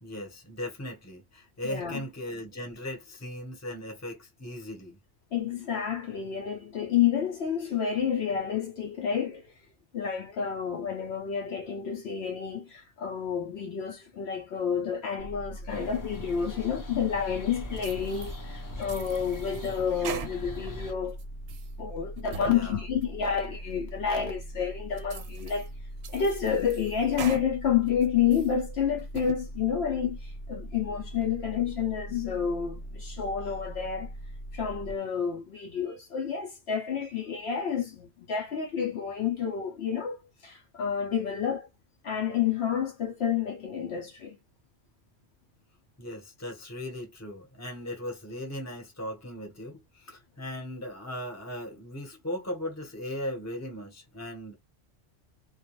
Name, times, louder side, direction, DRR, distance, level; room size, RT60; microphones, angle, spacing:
voice 1, 0.0-5.0 22.5-22.8 46.0-54.5, left 1 dB, 15° left, 0.8 m, -38 dB
voice 2, 1.7-2.0 5.3-9.5 9.9-21.2 21.8-25.7 26.1-34.1 34.5-40.2 40.4-41.7 42.0-44.4, left 7 dB, 65° left, 0.8 m, -29 dB
sound 1, 15.2-34.9, right 1 dB, 45° right, 0.4 m, -41 dB
sound 2, 15.7-20.9, left 2 dB, 30° left, 0.3 m, -43 dB
sound 3, 17.8-18.4 18.8-20.7 21.1-21.7 22.2-22.6 23.0-23.1 23.7-23.8 24.4-24.5 25.0-25.7 26.0-27.5 27.9-28.5 29.0-29.4, right 7 dB, 65° right, 0.8 m, -42 dB
2.3 x 2.2 x 2.9 m
omnidirectional pair, 1.2 m